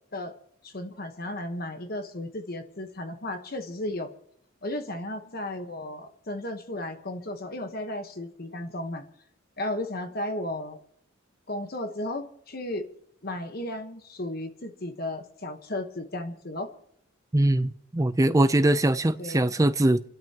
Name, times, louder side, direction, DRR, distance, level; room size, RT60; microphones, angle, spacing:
voice 1, 0.6-4.1 4.6-9.1 9.6-10.8 11.5-12.9 13.2-16.7 19.2-19.5, left 1 dB, 45° left, 1.1 m, -34 dB
voice 2, 17.3-20.0, right 1 dB, 15° right, 0.5 m, -22 dB
29.5 x 12.0 x 2.9 m
head